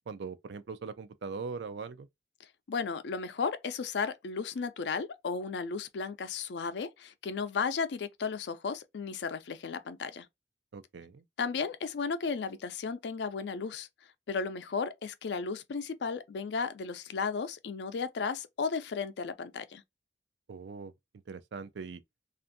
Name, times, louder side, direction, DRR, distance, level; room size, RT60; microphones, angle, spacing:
voice 1, 0.1-2.1 10.7-11.2 20.5-20.9 21.3-22.0, right 5 dB, 75° right, 0.4 m, -41 dB
voice 2, 2.7-10.3 11.4-13.9 14.3-19.8, left 5 dB, 75° left, 0.4 m, -34 dB
2.5 x 2.4 x 2.5 m
head